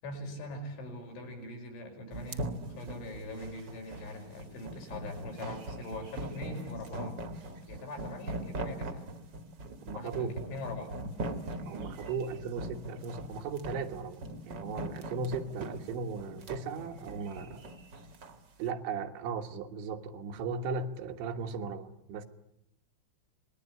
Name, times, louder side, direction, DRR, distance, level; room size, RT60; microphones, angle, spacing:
voice 1, 0.0-7.2 7.5-9.1 9.9-10.9, left 1 dB, 85° left, 2 dB, 7.8 m, -42 dB
sound 1, 2.1-18.4, right 1 dB, 45° right, 1.5 m, -40 dB
voice 2, 9.9-10.3 11.7-17.7 18.6-22.3, right 5 dB, 80° right, 6 dB, 3.9 m, -37 dB
27.0 x 20.5 x 9.6 m, 0.84 s
omnidirectional pair, 5.3 m